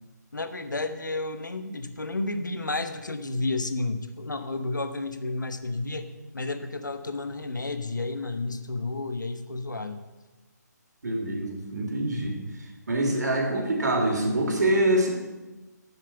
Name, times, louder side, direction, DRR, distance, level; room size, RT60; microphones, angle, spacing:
voice 1, 0.3-10.0, left 2 dB, 85° left, 10 dB, 1.1 m, -31 dB
voice 2, 11.0-12.4 12.9-15.1, right 1 dB, 70° right, 1 dB, 2.9 m, -25 dB
7.5 x 7.3 x 8.0 m, 1.1 s
figure-of-eight pair, 150°, 10 cm